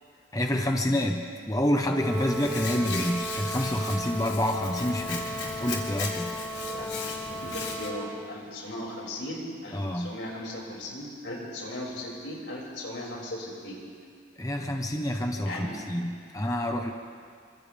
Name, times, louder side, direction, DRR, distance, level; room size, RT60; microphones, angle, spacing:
voice 1, 0.3-6.3 9.7-10.1 14.4-16.9, left 1 dB, 20° left, 3 dB, 1.1 m, -28 dB
Brass instrument, 1.9-8.3, equal, 5° left, 3.3 m, -36 dB
Hands, 2.1-7.9, left 4 dB, 65° left, 3.6 m, -37 dB
voice 2, 6.6-13.8 15.4-15.8, left 1 dB, 90° left, -4 dB, 6.5 m, -37 dB
28.5 x 26.0 x 3.6 m, 2.2 s
head